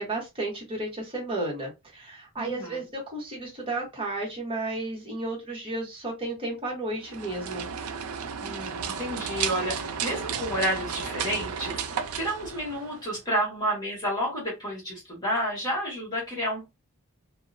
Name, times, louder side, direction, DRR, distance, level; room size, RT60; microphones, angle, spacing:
voice 1, 0.0-7.7, right 2 dB, 25° right, -1 dB, 1.0 m, -33 dB
voice 2, 2.4-2.8 8.4-11.8 12.2-16.7, equal, 20° left, -5 dB, 1.3 m, -30 dB
sound 1, 7.0-13.2, right 7 dB, 85° right, 0.4 m, -33 dB
2.7 x 2.0 x 2.5 m, 0.23 s
head